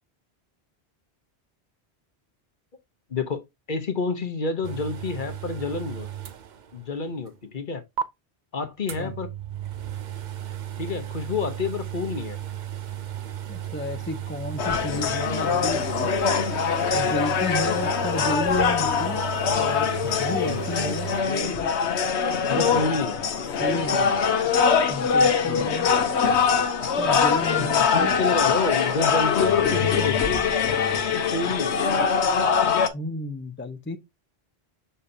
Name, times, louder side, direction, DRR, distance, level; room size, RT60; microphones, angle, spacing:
voice 1, 3.1-6.1 6.7-7.8 8.5-9.3 10.8-12.4 20.4-20.6 22.5-23.2 25.5-25.8 27.6-30.6 31.1-31.8, left 4 dB, 50° left, 1.0 m, -29 dB
sound 1, 4.6-7.0 7.3-7.4 8.0-8.1 8.9-21.2, right 11 dB, 50° right, 0.6 m, -35 dB
voice 2, 13.5-15.9 16.9-19.2 19.5-21.7 22.6-22.8 23.6-24.2 24.9-25.9 27.0-28.1 32.9-34.0, left 2 dB, 15° left, 0.6 m, -32 dB
sound 2, 14.6-32.9, left 6 dB, 90° left, 1.1 m, -23 dB
6.4 x 5.6 x 2.7 m
omnidirectional pair, 1.1 m